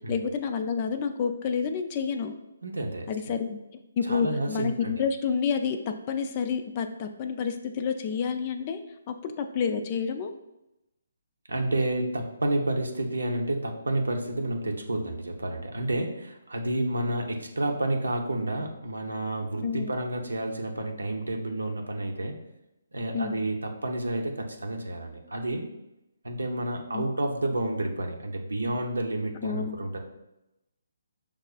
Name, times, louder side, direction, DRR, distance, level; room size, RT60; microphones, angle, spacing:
voice 1, 0.1-2.3 3.1-3.6 4.0-8.8 9.1-10.3 19.6-19.9 23.1-23.4 26.9-27.0 29.4-29.8, left 6 dB, 35° left, 7 dB, 0.3 m, -29 dB
voice 2, 2.6-3.3 4.0-4.9 11.5-22.4 22.9-25.6 26.2-30.0, right 1 dB, 85° right, 3 dB, 0.6 m, -30 dB
5.4 x 2.4 x 2.3 m, 0.91 s
figure-of-eight pair, 150°, 0 cm